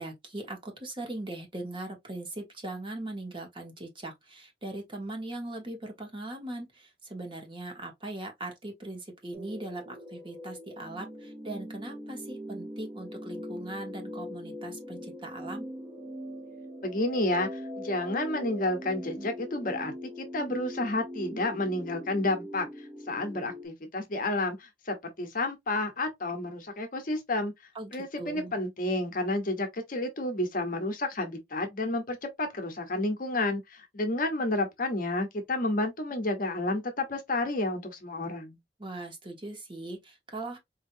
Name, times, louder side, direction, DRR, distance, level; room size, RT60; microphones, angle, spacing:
voice 1, 0.0-15.6 27.7-28.5 38.8-40.6, right 2 dB, 30° right, 1.2 m, -40 dB
sound 1, 9.3-23.7, equal, 15° right, 0.5 m, -42 dB
voice 2, 16.8-22.7 23.1-27.5 27.9-38.6, left 2 dB, 50° left, 1.0 m, -30 dB
4.4 x 2.7 x 2.6 m
head